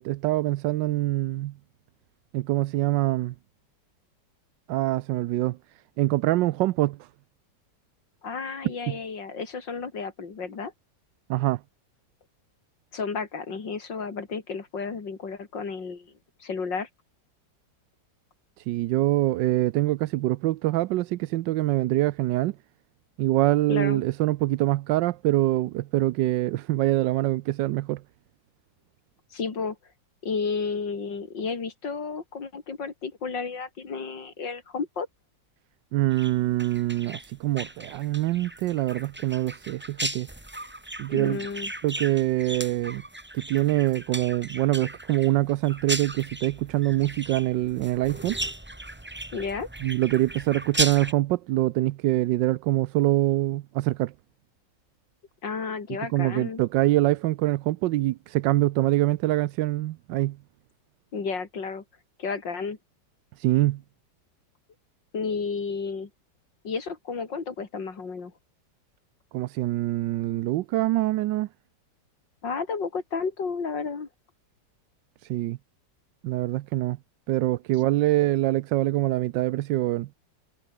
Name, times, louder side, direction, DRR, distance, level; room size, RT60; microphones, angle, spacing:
voice 1, 0.0-1.5 2.3-3.3 4.7-5.6 6.0-7.1 8.9-9.0 11.3-11.6 18.6-22.6 23.2-28.0 35.9-40.3 41.0-41.4 41.8-43.0 43.3-48.4 49.8-54.1 56.1-60.4 63.4-63.8 69.3-71.5 75.2-75.6 76.2-77.0 77.3-80.1, right 16 dB, 85° right, 1.3 m, -24 dB
voice 2, 8.2-10.7 12.9-16.1 16.4-16.9 23.7-24.0 29.3-29.8 30.2-35.1 41.1-41.7 49.3-49.7 55.4-56.6 61.1-61.8 62.2-62.8 65.1-66.1 66.6-68.3 72.4-74.1, left 5 dB, 85° left, 3.6 m, -32 dB
sound 1, 36.1-51.1, right 1 dB, 10° right, 0.9 m, -36 dB
omnidirectional pair, 1.9 m